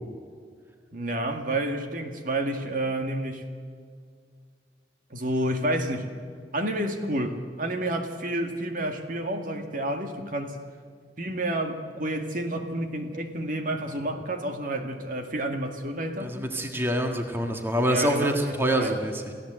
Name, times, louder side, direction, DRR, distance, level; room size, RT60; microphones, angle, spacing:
voice 1, 0.9-3.5 5.1-6.1 6.5-10.6 11.2-16.3 17.8-18.4 18.7-19.0, right 1 dB, 50° right, 5 dB, 2.0 m, -29 dB
voice 2, 16.2-19.3, right 1 dB, 15° right, 3 dB, 1.7 m, -26 dB
29.0 x 16.0 x 7.8 m, 2.1 s
head